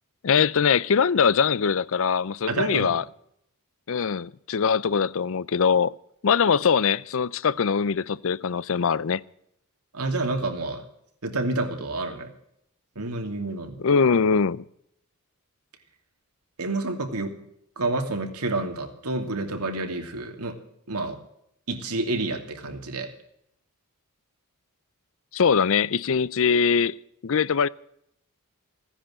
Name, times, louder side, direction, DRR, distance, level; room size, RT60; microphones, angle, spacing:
voice 1, 0.2-3.0 3.9-5.9 6.2-9.2 13.8-14.6 25.3-26.9 27.2-27.7, left 6 dB, 60° left, 0.5 m, -22 dB
voice 2, 2.5-3.0 9.9-10.9 11.2-12.3 13.0-13.8 16.6-17.3 17.8-20.6 20.9-21.2 21.7-23.1, right 2 dB, 90° right, 2.7 m, -29 dB
16.5 x 10.0 x 7.6 m
head